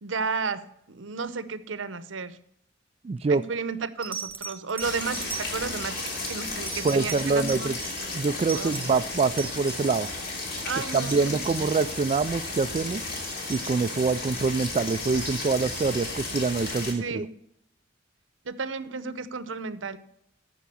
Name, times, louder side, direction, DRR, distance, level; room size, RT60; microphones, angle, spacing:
voice 1, 0.0-2.4 3.3-7.7 8.5-8.9 10.6-11.4 17.0-17.4 18.4-20.0, right 5 dB, 80° right, 14 dB, 0.8 m, -33 dB
voice 2, 3.0-3.4 6.8-7.8 8.1-10.1 10.9-13.0 13.5-17.2, right 4 dB, 35° right, 10 dB, 0.3 m, -25 dB
sound 1, 3.2-3.5 4.0-10.2 10.5-11.2 11.5-11.6 11.9-12.1 12.5-14.1 14.7-15.4 16.3-16.4, right 5 dB, 10° right, 1.3 m, -40 dB
sound 2, 4.8-16.9, left 2 dB, 55° left, 3.1 m, -34 dB
13.5 x 5.8 x 6.9 m, 0.76 s
head